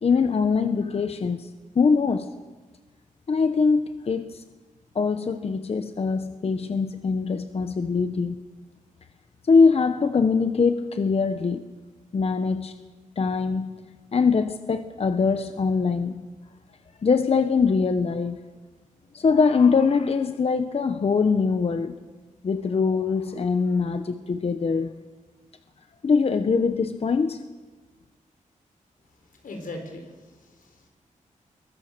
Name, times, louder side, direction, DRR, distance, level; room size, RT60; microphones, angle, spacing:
voice 1, 0.0-1.5 1.7-2.3 3.3-4.4 4.9-8.4 9.5-11.7 12.1-12.7 13.2-13.8 14.1-16.2 17.0-18.4 19.1-22.0 22.4-24.9 26.0-27.4, left 5 dB, 45° left, 9 dB, 1.0 m, -22 dB
voice 2, 29.1-30.9, left 2 dB, 90° left, 4 dB, 4.7 m, -40 dB
22.5 x 20.0 x 6.8 m, 1.3 s
wide cardioid pair, 130°, 14 cm